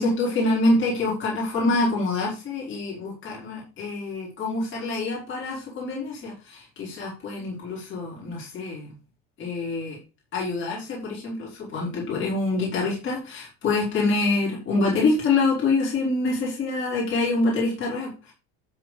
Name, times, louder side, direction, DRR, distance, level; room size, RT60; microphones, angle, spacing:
voice 1, 0.0-8.9 9.4-10.0 10.3-18.3, left 3 dB, 40° left, -5 dB, 5.4 m, -26 dB
12.5 x 4.7 x 5.2 m, 0.32 s
cardioid pair, 135°, 32 cm